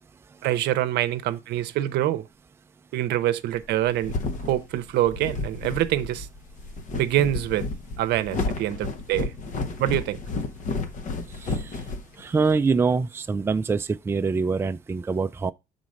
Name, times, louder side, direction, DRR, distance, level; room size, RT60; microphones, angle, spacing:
voice 1, 0.4-2.3 2.9-4.1 4.4-6.3 6.9-7.7 8.0-9.3 9.8-10.2, right 13 dB, 75° right, 0.7 m, -25 dB
sound 1, 3.6-12.6, left 3 dB, 50° left, 0.9 m, -32 dB
voice 2, 12.2-15.5, right 4 dB, 15° right, 0.4 m, -24 dB
6.3 x 4.0 x 5.2 m
cardioid pair, 110°, 17 cm